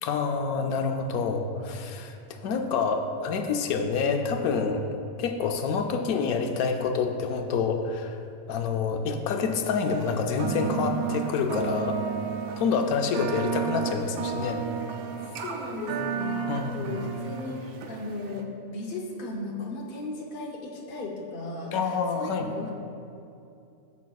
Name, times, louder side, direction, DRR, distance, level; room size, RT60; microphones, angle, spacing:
voice 1, 0.0-4.8 5.2-8.2 8.5-12.0 12.6-14.6 16.5-17.0 21.7-22.5, left 5 dB, 80° left, 5 dB, 1.1 m, -27 dB
sound 1, 9.9-18.4, right 7 dB, 80° right, 1.1 m, -33 dB
voice 2, 12.7-13.8 15.4-22.7, left 2 dB, 45° left, -2 dB, 0.8 m, -37 dB
12.0 x 7.2 x 2.3 m, 2.7 s
omnidirectional pair, 1.6 m